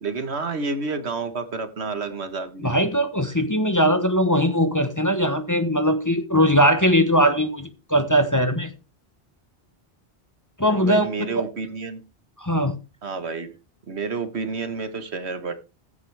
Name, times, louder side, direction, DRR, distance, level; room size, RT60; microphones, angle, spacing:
voice 1, 0.0-2.7 10.6-12.0 13.0-13.6 13.8-15.5, right 4 dB, 75° right, 1.7 m, -30 dB
voice 2, 2.6-8.7 10.6-11.1 12.4-12.8, equal, 15° left, 1.1 m, -20 dB
15.5 x 8.2 x 3.4 m
omnidirectional pair, 1.1 m